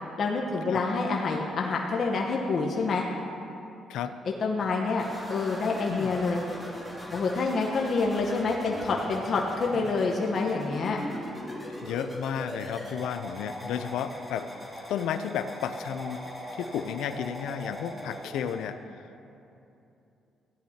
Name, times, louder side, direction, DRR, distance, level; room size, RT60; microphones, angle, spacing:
voice 1, 0.2-3.1 4.4-6.4 7.1-11.0, left 3 dB, 55° left, -1 dB, 1.0 m, -27 dB
sound 1, 5.0-18.6, equal, 5° right, 2.3 m, -40 dB
voice 2, 11.8-14.5 14.9-16.2 16.6-19.1, left 8 dB, 85° left, 11 dB, 0.4 m, -33 dB
16.0 x 10.5 x 2.8 m, 2.8 s
cardioid pair, 90°, 0 cm